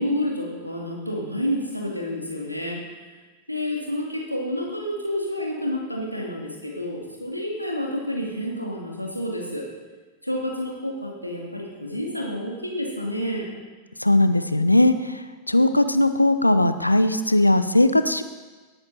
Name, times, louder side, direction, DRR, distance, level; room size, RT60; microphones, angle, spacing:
voice 1, 0.0-3.1 3.5-9.7 10.2-13.5, left 1 dB, 90° right, -1 dB, 2.4 m, -29 dB
voice 2, 14.0-18.2, left 1 dB, 85° left, 11 dB, 0.6 m, -19 dB
18.0 x 8.8 x 4.2 m, 1.3 s
figure-of-eight pair, 90°, 0 cm